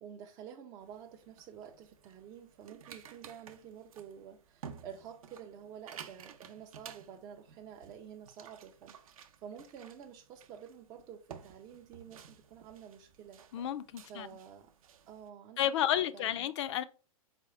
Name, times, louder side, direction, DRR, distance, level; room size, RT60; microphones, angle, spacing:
voice 1, 0.0-13.4 14.1-14.7 15.1-15.7 16.1-16.5, right 8 dB, 20° right, 0.3 m, -50 dB
sound 1, 0.8-15.3, right 7 dB, 70° right, 0.6 m, -54 dB
voice 2, 13.5-14.3 15.6-16.8, left 11 dB, 55° left, 0.4 m, -31 dB
4.2 x 2.3 x 4.0 m
hypercardioid pair, 125°, 18 cm